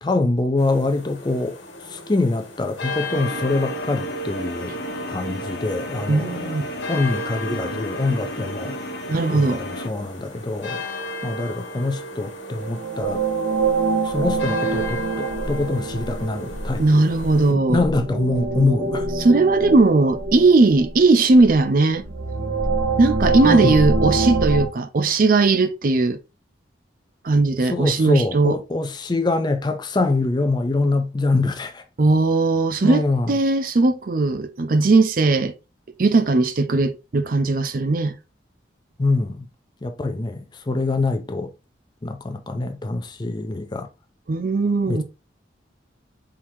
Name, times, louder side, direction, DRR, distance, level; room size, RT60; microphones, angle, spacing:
voice 1, 0.0-1.6 1.9-4.7 5.1-6.6 6.9-8.8 9.3-10.8 11.2-13.2 14.0-17.1 17.5-19.1 23.4-23.8 27.7-31.8 32.8-33.3 39.0-39.5 39.8-41.5 42.0-43.9 44.9-45.0, left 2 dB, 25° left, 0.5 m, -24 dB
sound 1, 0.6-17.5, left 1 dB, 90° left, 1.6 m, -35 dB
sound 2, 3.1-9.9, left 1 dB, 60° left, 1.2 m, -33 dB
voice 2, 6.1-6.6 9.1-9.6 16.8-17.8 19.2-22.0 23.0-26.2 27.2-28.6 32.0-35.5 36.0-38.2 44.3-45.0, right 3 dB, 50° right, 0.4 m, -18 dB
sound 3, 12.6-24.7, right 3 dB, 70° right, 1.9 m, -25 dB
4.5 x 3.6 x 2.7 m
head